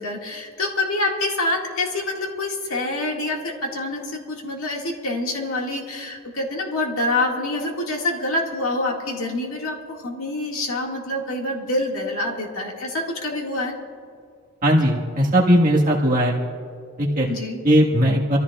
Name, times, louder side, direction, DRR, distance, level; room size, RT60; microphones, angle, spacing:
voice 1, 0.0-13.8 17.3-17.6, left 2 dB, 80° left, 0 dB, 1.9 m, -26 dB
voice 2, 14.6-16.4 17.0-17.3 17.6-18.4, equal, 40° right, -3 dB, 1.5 m, -18 dB
26.5 x 14.5 x 2.4 m, 2.2 s
head